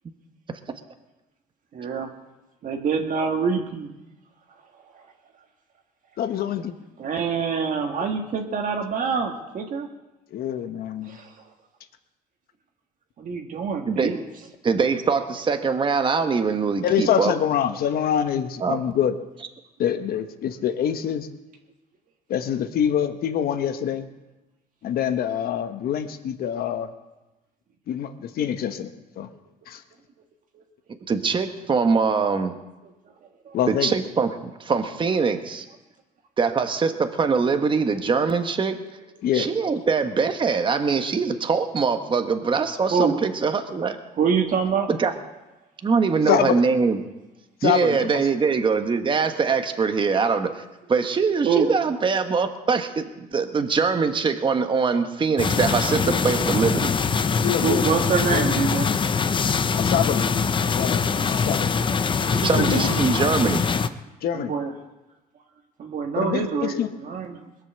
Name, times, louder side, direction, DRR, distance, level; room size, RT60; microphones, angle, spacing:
voice 1, 1.7-2.1 2.6-3.9 7.0-9.9 11.0-11.3 13.2-14.2 33.4-33.6 42.9-43.2 44.2-44.9 51.4-51.7 57.6-58.9 62.3-63.0 64.3-64.7 65.8-66.7 67.0-67.4, right 5 dB, 50° right, 2 dB, 1.6 m, -25 dB
voice 2, 6.2-6.7 10.3-11.2 16.8-19.1 19.8-21.3 22.3-24.1 24.8-26.9 27.9-29.3 29.7-29.8 33.5-34.0 39.2-39.5 46.3-46.5 47.6-48.2 54.9-55.0 56.0-56.3 57.4-57.9 58.3-58.6 59.8-60.2 60.6-61.7 62.5-63.1 64.2-64.5 66.1-66.9, left 9 dB, 65° left, 9 dB, 1.2 m, -25 dB
voice 3, 14.6-17.3 18.6-18.8 31.1-32.6 33.7-34.3 34.6-35.6 36.4-38.8 39.3-44.0 44.9-45.1 45.8-47.0 47.6-50.6 50.9-56.9 62.4-63.7, right 5 dB, 30° right, 7 dB, 1.2 m, -23 dB
sound 1, 55.4-63.9, left 5 dB, 30° left, 0.7 m, -23 dB
21.0 x 7.4 x 6.8 m, 1.0 s
cardioid pair, 110°, 17 cm